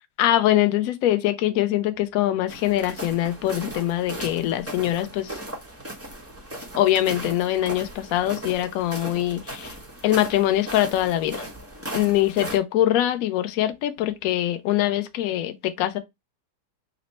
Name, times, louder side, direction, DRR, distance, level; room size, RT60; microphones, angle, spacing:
voice 1, 0.2-5.4 6.8-9.7 10.0-11.4 11.9-16.0, left 13 dB, 85° left, 0.7 m, -23 dB
sound 1, 2.5-12.6, right 1 dB, 15° right, 0.5 m, -37 dB
4.2 x 2.1 x 4.1 m
omnidirectional pair, 2.1 m